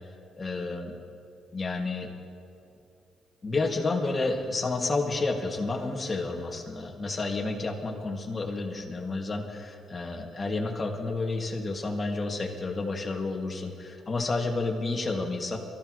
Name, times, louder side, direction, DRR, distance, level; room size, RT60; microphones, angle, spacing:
voice 1, 0.3-0.9 1.5-2.1 3.4-15.6, left 3 dB, 30° left, 0 dB, 2.5 m, -30 dB
23.5 x 15.0 x 3.3 m, 2.5 s
cardioid pair, 90°, 0 cm